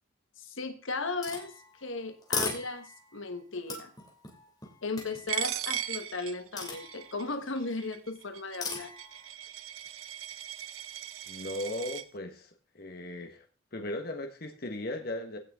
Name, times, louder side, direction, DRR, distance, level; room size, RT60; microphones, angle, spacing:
voice 1, 0.4-1.5 1.8-3.9 4.8-8.9, left 3 dB, 70° left, 8 dB, 1.4 m, -36 dB
sound 1, 1.2-3.2 3.7-5.5 6.6-7.5 8.6-9.3, left 3 dB, 20° left, 2.8 m, -38 dB
Coin (dropping), 5.3-12.0, right 10 dB, 85° right, 0.8 m, -38 dB
voice 2, 11.3-12.5 12.7-13.4 13.7-15.4, left 1 dB, 50° left, 5 dB, 1.4 m, -37 dB
16.5 x 6.5 x 3.7 m, 0.38 s
head